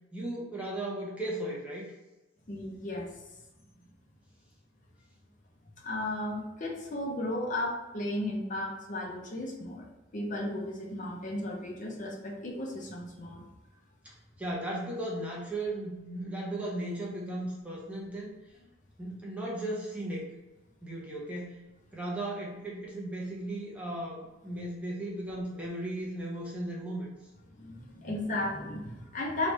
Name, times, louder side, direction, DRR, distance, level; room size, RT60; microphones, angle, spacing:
voice 1, 0.1-1.8 14.0-18.3 19.0-20.3 20.8-21.6 21.9-27.1, right 1 dB, 5° right, -4 dB, 0.7 m, -36 dB
voice 2, 2.5-3.2 5.8-9.9 10.1-13.4 27.5-29.5, left 1 dB, 40° left, -1 dB, 0.7 m, -35 dB
3.3 x 2.4 x 4.1 m, 1.1 s
head